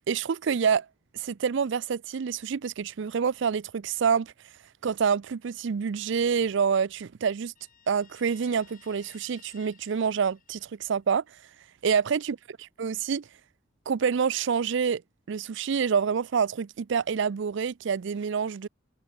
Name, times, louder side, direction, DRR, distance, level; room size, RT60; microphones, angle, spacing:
voice 1, 0.1-0.9 1.1-4.3 4.8-7.5 7.9-11.2 11.8-12.4 12.8-13.2 13.9-15.0 15.3-18.7, right 6 dB, 65° right, 0.4 m, -27 dB
Guitar, 7.5-11.1, left 8 dB, 45° left, 4.6 m, -57 dB
open air
head